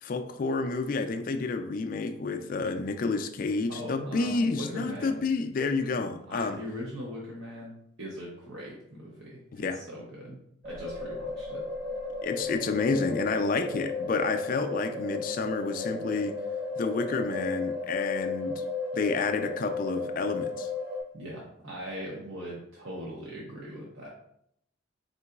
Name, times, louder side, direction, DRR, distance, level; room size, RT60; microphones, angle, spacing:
voice 1, 0.0-6.6 9.5-9.8 12.2-16.4 16.8-18.7 18.9-20.7, left 4 dB, 45° left, 7 dB, 0.3 m, -29 dB
voice 2, 3.7-5.2 5.8-10.4 10.6-11.7 21.1-24.1, equal, 65° right, -4 dB, 0.7 m, -40 dB
sound 1, 10.6-21.0, left 3 dB, 35° right, 1.0 m, -34 dB
3.9 x 3.7 x 2.3 m, 0.73 s
head